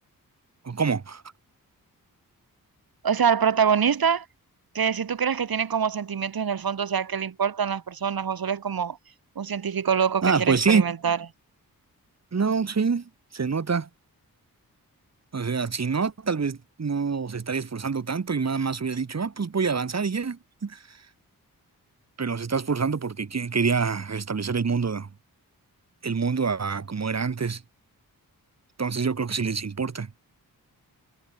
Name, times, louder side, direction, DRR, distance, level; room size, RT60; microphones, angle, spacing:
voice 1, 0.6-1.2 10.2-10.8 12.3-13.9 15.3-21.0 22.2-25.1 26.0-27.6 28.8-30.1, right 5 dB, 50° right, 3.5 m, -26 dB
voice 2, 3.0-4.2 4.7-9.0 9.4-11.2, right 7 dB, 80° right, 6.4 m, -25 dB
wide cardioid pair, 135°, 35 cm